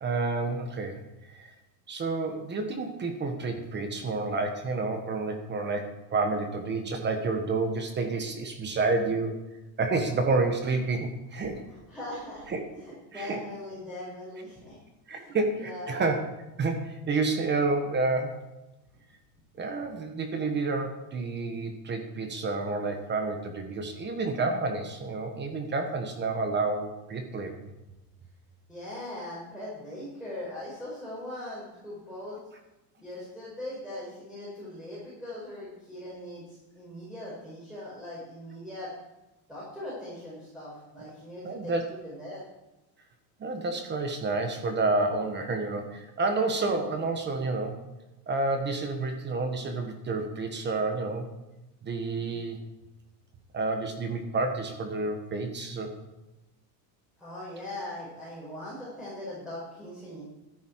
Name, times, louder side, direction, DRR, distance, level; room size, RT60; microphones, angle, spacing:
voice 1, 0.0-1.0 1.3-1.5 1.9-9.4 9.8-11.6 12.5-12.6 13.1-13.4 15.1-16.2 16.6-18.4 19.6-27.7 41.4-41.8 43.4-47.8 48.3-51.3 51.8-52.6 53.5-56.0, right 3 dB, 20° right, 6 dB, 1.3 m, -29 dB
voice 2, 11.7-12.5 12.7-14.8 15.1-15.3 15.6-16.0 28.7-32.4 33.0-38.9 39.5-42.4 57.2-60.2, left 1 dB, ahead, -8 dB, 4.9 m, -40 dB
12.5 x 10.5 x 4.7 m, 0.99 s
supercardioid pair, 150°, 49 cm